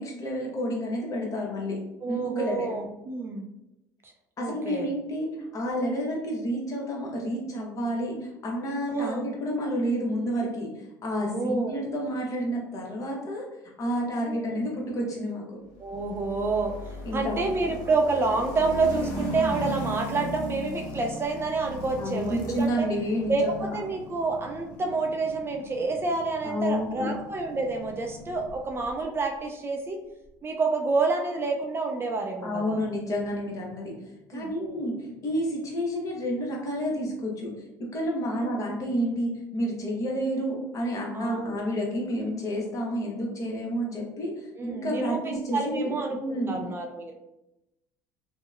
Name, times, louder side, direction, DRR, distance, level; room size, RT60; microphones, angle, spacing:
voice 1, 0.0-1.8 2.1-2.7 4.4-13.4 13.8-15.6 17.0-17.5 22.0-23.8 26.4-27.1 32.4-33.9 34.3-37.5 37.9-46.6, equal, 40° left, -2 dB, 0.9 m, -30 dB
voice 2, 2.0-3.5 4.0-4.1 4.4-4.9 5.4-5.5 8.9-9.3 11.2-11.8 14.3-14.7 15.8-22.9 23.3-30.0 30.4-32.8 34.3-34.5 38.3-38.7 41.1-41.6 44.6-47.1, right 3 dB, 30° right, 2 dB, 0.3 m, -29 dB
sound 1, 15.9-29.0, left 1 dB, 70° left, 0.6 m, -38 dB
2.7 x 2.0 x 2.3 m, 0.91 s
supercardioid pair, 90°, 8 cm